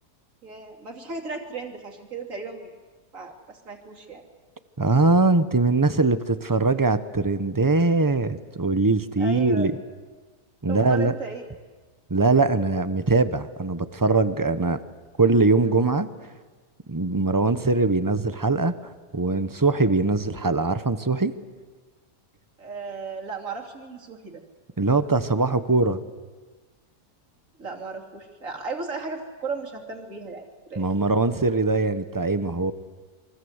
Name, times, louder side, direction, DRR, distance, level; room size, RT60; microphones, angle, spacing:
voice 1, 0.4-2.7 3.1-4.2 9.2-9.7 10.7-11.4 22.6-24.4 27.6-30.9, right 4 dB, 50° right, 2 dB, 3.2 m, -35 dB
voice 2, 4.8-9.7 10.6-11.1 12.1-14.8 15.2-16.1 16.9-18.7 19.1-21.3 24.8-26.0 30.8-32.7, right 3 dB, 20° right, 12 dB, 0.5 m, -22 dB
27.5 x 23.5 x 8.0 m, 1.4 s
omnidirectional pair, 1.8 m